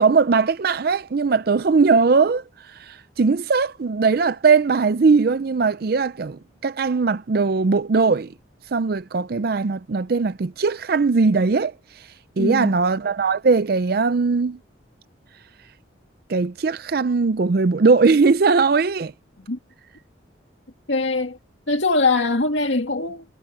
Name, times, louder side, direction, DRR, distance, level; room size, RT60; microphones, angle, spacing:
voice 1, 0.0-8.3 8.7-11.7 12.4-14.6 16.3-19.1, right 4 dB, 55° right, 0.5 m, -19 dB
voice 2, 12.4-12.7 19.5-19.6 20.9-21.4 21.7-23.2, left 3 dB, 75° left, 2.1 m, -22 dB
head